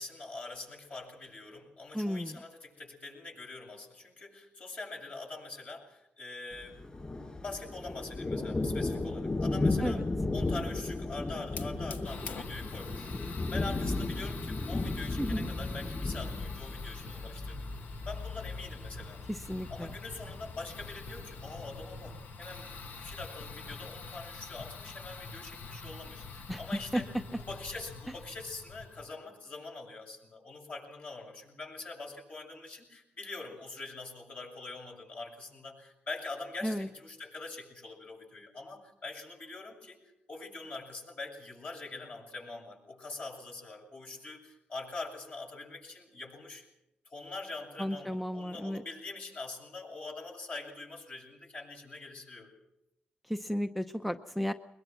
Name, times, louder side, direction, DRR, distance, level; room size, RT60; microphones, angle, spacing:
voice 1, 0.0-6.8 7.4-10.0 10.3-17.6 18.0-19.2 19.7-27.1 27.4-40.0 40.3-46.6 47.0-52.5, left 3 dB, 50° left, 1 dB, 7.8 m, -44 dB
voice 2, 1.9-2.4 9.8-10.0 15.2-15.5 19.3-19.9 26.5-27.0 36.6-36.9 47.8-48.8 53.3-54.5, equal, ahead, 8 dB, 0.8 m, -33 dB
Thunder, 6.5-22.1, left 2 dB, 30° left, 7.8 m, -35 dB
Fire, 11.5-29.1, left 4 dB, 65° left, 1.6 m, -45 dB
22.5 x 21.5 x 6.1 m, 0.86 s
cardioid pair, 95°, 3 cm